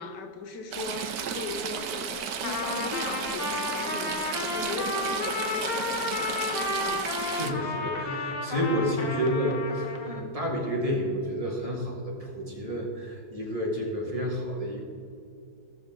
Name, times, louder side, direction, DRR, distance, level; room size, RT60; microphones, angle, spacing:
voice 1, 0.0-6.5 6.9-7.1, left 4 dB, 80° left, 7 dB, 1.4 m, -38 dB
Stream / Trickle dribble, 0.7-7.5, right 7 dB, 65° right, 1.2 m, -34 dB
Trumpet, 2.4-10.3, left 3 dB, 40° left, 0.9 m, -32 dB
voice 2, 7.2-14.8, equal, 20° right, -2 dB, 1.8 m, -30 dB
17.0 x 6.8 x 3.7 m, 2.5 s
omnidirectional pair, 1.8 m